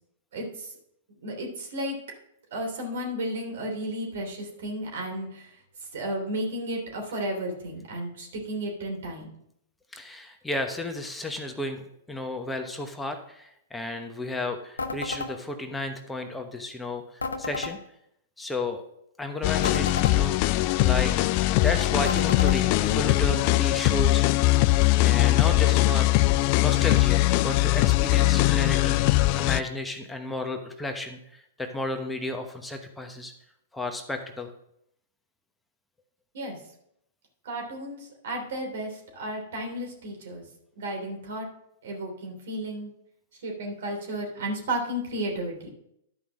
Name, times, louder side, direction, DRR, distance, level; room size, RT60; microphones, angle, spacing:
voice 1, 0.3-0.8 1.2-2.0 2.5-9.3 36.3-36.6 37.4-40.5 40.7-41.5 41.8-42.9 43.4-45.7, right 1 dB, 70° right, 1 dB, 3.3 m, -33 dB
voice 2, 9.9-17.8 18.4-18.8 19.2-20.4 20.8-21.1 21.6-24.2 25.0-26.1 26.6-31.2 31.6-33.3 33.7-34.5, left 2 dB, 10° left, 4 dB, 1.0 m, -33 dB
sound 1, 14.8-15.3 17.2-17.7 19.6-20.2 22.1-22.6, left 3 dB, 90° left, 1.0 m, -32 dB
sound 2, 19.4-29.6, left 18 dB, 45° left, 0.3 m, -21 dB
11.5 x 5.2 x 6.3 m, 0.76 s
hypercardioid pair, 115°, 0 cm